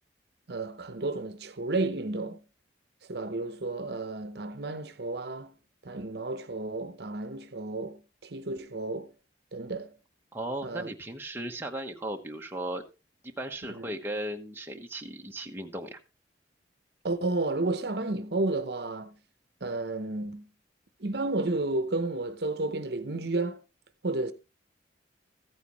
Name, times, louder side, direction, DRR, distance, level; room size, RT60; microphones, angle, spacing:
voice 1, 0.5-2.4 3.1-5.6 5.8-9.1 9.5-10.0 10.6-10.9 13.7-13.9 17.0-19.1 19.6-20.5 21.0-23.6 24.0-24.3, right 2 dB, 60° right, 0.9 m, -32 dB
voice 2, 10.3-12.8 13.2-16.0, right 1 dB, 10° right, 1.0 m, -36 dB
14.5 x 9.1 x 3.1 m
head